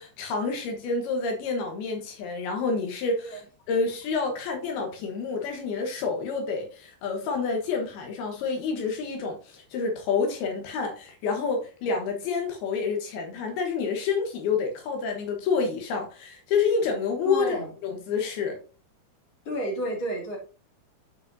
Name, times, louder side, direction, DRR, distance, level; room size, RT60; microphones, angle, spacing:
voice 1, 0.0-17.6 17.8-18.6, left 4 dB, 75° left, 3.1 m, -28 dB
voice 2, 17.2-17.7 19.4-20.4, equal, 35° left, 3.0 m, -31 dB
12.5 x 4.9 x 2.7 m
omnidirectional pair, 4.5 m